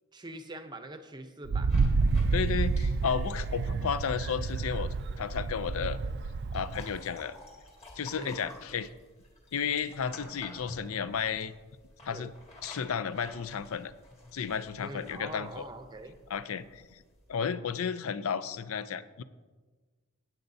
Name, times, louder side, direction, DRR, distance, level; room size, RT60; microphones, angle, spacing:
voice 1, 0.1-1.7 3.3-3.4 8.1-8.4 12.1-12.3 14.8-16.2, right 2 dB, 20° right, 7 dB, 0.6 m, -43 dB
Wind, 1.5-7.0, right 4 dB, 50° right, 0.3 m, -29 dB
sound 1, 1.7-17.4, left 1 dB, 30° left, 1.8 m, -51 dB
voice 2, 2.3-6.0 6.5-7.4 8.0-8.9 9.5-11.5 12.0-12.3 12.6-13.9 14.3-15.6 16.3-17.0 17.3-19.2, left 7 dB, 75° left, 14 dB, 0.4 m, -33 dB
14.5 x 9.0 x 2.7 m, 1.4 s
head